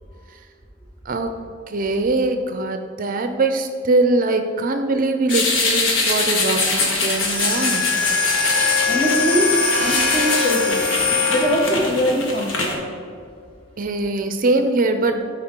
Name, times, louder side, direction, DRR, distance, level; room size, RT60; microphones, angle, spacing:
voice 1, 1.1-1.4 1.7-7.9 13.8-15.2, right 2 dB, 45° right, 7 dB, 0.5 m, -22 dB
sound 1, 5.3-12.8, left 3 dB, 80° left, 1.3 m, -23 dB
sound 2, 7.2-11.9, left 4 dB, 5° left, 1.5 m, -22 dB
voice 2, 8.9-12.9, equal, 30° left, -3 dB, 1.7 m, -22 dB
13.5 x 4.7 x 3.7 m, 2.3 s
head